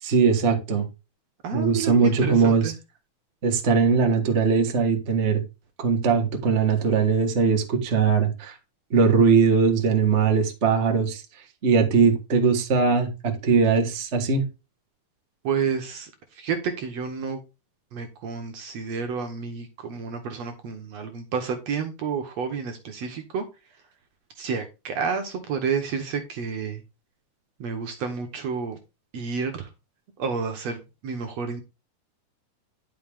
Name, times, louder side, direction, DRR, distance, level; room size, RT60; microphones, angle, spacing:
voice 1, 0.0-0.9 1.5-2.7 3.4-5.4 5.8-8.6 8.9-11.2 11.6-14.5, right 5 dB, 35° right, 1.2 m, -20 dB
voice 2, 1.4-2.7 15.4-17.4 17.9-23.4 24.4-26.8 27.6-28.8 29.1-29.7 30.2-31.6, right 6 dB, 60° right, 2.0 m, -30 dB
10.5 x 5.8 x 3.6 m
omnidirectional pair, 3.8 m